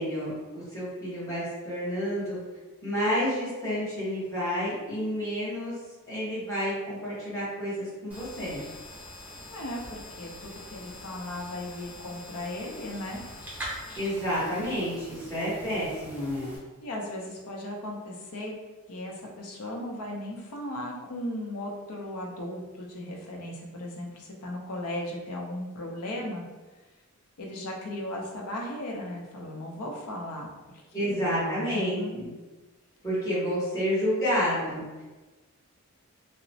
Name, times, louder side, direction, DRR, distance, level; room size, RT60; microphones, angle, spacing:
voice 1, 0.0-2.4 2.8-5.7 6.1-8.6 14.0-16.5 30.9-32.3 33.0-34.8, equal, 15° left, -12 dB, 1.1 m, -29 dB
sound 1, 8.1-16.6, equal, 5° right, 0.6 m, -43 dB
voice 2, 9.5-13.2 16.8-18.5 18.9-26.4 27.4-30.5 31.0-32.2, left 1 dB, 85° left, -1 dB, 0.6 m, -36 dB
2.9 x 2.0 x 2.7 m, 1.2 s
head